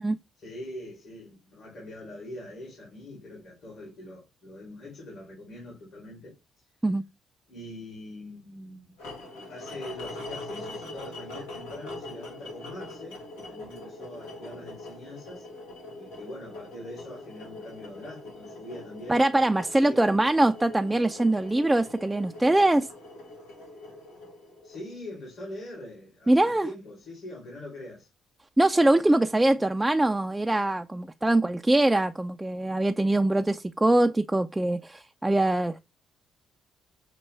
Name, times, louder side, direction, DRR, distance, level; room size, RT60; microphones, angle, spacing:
voice 1, 0.4-6.3 7.5-9.0 9.3-15.5 15.9-19.2 19.6-20.0 24.6-28.1, left 1 dB, 60° left, 2.7 m, -43 dB
sound 1, 9.0-25.1, left 2 dB, 85° left, 1.5 m, -42 dB
voice 2, 19.1-22.9 26.3-26.7 28.6-35.8, right 1 dB, 10° right, 0.3 m, -23 dB
6.4 x 2.2 x 3.3 m
supercardioid pair, 60°, 0 cm